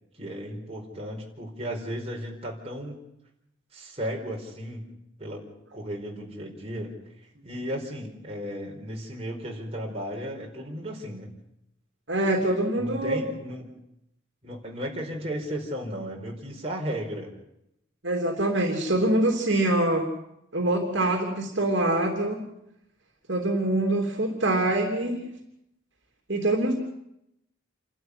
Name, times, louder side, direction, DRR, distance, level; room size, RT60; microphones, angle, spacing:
voice 1, 0.2-3.0 3.7-4.9 5.2-5.4 5.7-6.9 7.4-11.3 12.3-12.5 12.7-13.7 14.4-17.3, equal, 30° right, -1 dB, 4.7 m, -35 dB
voice 2, 12.1-13.2 18.0-20.1 20.5-22.4 23.3-25.2 26.3-26.7, right 1 dB, 60° right, 2 dB, 3.2 m, -24 dB
28.0 x 12.5 x 9.9 m, 0.83 s
head